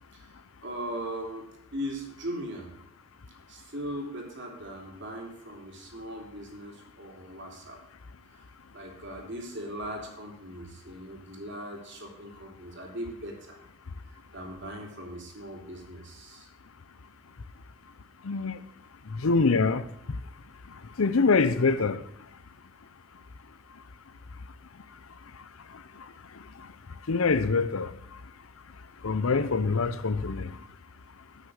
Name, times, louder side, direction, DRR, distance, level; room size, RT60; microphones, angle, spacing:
voice 1, 0.6-1.5 1.7-2.7 3.5-7.8 8.7-13.6 14.3-16.5, equal, 55° right, 3.1 m, -39 dB
voice 2, 18.2-18.6 19.2-19.8 21.0-22.0 27.1-27.9 29.0-30.5, left 4 dB, 80° left, 0.7 m, -24 dB
13.5 x 6.4 x 6.5 m
head